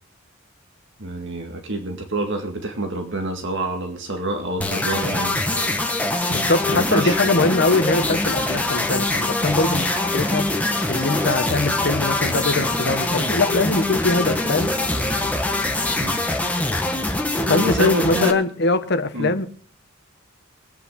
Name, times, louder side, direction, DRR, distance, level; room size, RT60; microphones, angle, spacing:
voice 1, 1.0-5.7 6.7-7.4 14.2-14.4 16.0-16.2 17.5-18.3 19.1-19.3, right 1 dB, 60° right, 2.0 m, -27 dB
sound 1, 4.6-18.3, left 2 dB, 5° left, 1.4 m, -23 dB
voice 2, 6.3-10.5 10.9-14.7 17.5-19.5, left 3 dB, 55° left, 1.3 m, -22 dB
sound 2, 7.1-16.4, right 1 dB, 10° right, 1.7 m, -35 dB
23.0 x 9.2 x 3.8 m
head